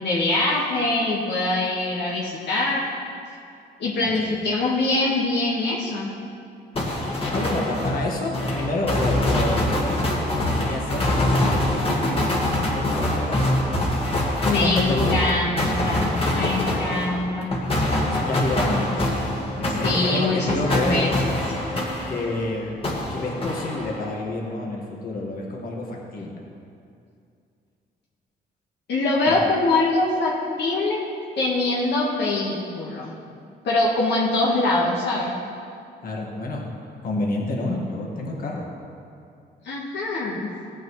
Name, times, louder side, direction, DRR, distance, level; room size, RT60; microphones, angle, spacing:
voice 1, 0.0-2.9 3.8-6.2 11.9-12.1 14.4-17.5 19.8-21.4 28.9-31.1 31.4-33.1 33.6-35.3 39.6-40.5, left 2 dB, 70° left, -4 dB, 1.5 m, -23 dB
voice 2, 4.1-4.4 7.3-11.3 12.7-13.7 14.5-15.3 18.0-19.1 19.5-21.0 22.1-22.8 23.1-26.4 29.3-29.4 36.0-36.7 37.0-38.7, left 2 dB, 55° left, -1 dB, 1.7 m, -29 dB
sound 1, 6.8-22.5 22.8-24.2, left 1 dB, 30° left, 1.7 m, -24 dB
15.5 x 8.7 x 3.2 m, 2.5 s
cardioid pair, 110°, 18 cm